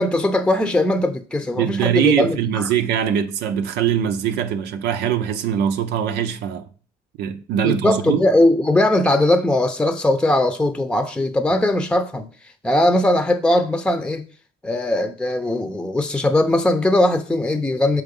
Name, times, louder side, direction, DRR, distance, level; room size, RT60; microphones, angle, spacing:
voice 1, 0.0-2.4 7.6-12.3 12.6-14.2 14.6-18.0, left 1 dB, 5° left, 0.7 m, -19 dB
voice 2, 1.6-6.6 7.2-8.2, right 9 dB, 85° right, 0.7 m, -22 dB
6.2 x 4.8 x 5.3 m
cardioid pair, 110°, 17 cm